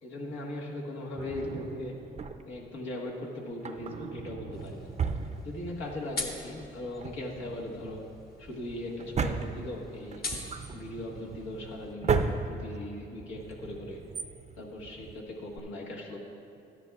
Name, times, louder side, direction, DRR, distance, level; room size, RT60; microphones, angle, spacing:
voice 1, 0.0-2.0 2.5-4.9 5.4-8.1 8.4-10.3 10.7-14.0 14.6-16.2, left 1 dB, 90° left, -2 dB, 1.5 m, -39 dB
Drawer open or close, 1.2-2.7 3.5-6.0 6.3-6.4 6.9-15.6, right 5 dB, 35° right, 0.5 m, -36 dB
sound 1, 4.5-11.9, left 2 dB, 50° left, 1.2 m, -43 dB
12.5 x 9.9 x 2.4 m, 2.8 s
cardioid pair, 90°, 20 cm